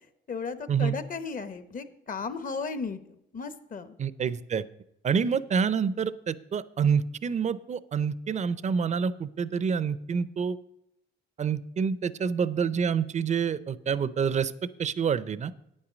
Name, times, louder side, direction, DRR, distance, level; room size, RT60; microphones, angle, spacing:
voice 1, 0.3-3.0 3.3-3.9, left 4 dB, 45° left, 12 dB, 1.0 m, -35 dB
voice 2, 4.0-4.6 5.0-10.6 11.4-14.5 14.8-15.5, right 6 dB, 35° right, 17 dB, 0.5 m, -27 dB
9.3 x 8.8 x 5.1 m, 0.80 s
cardioid pair, 90°, 20 cm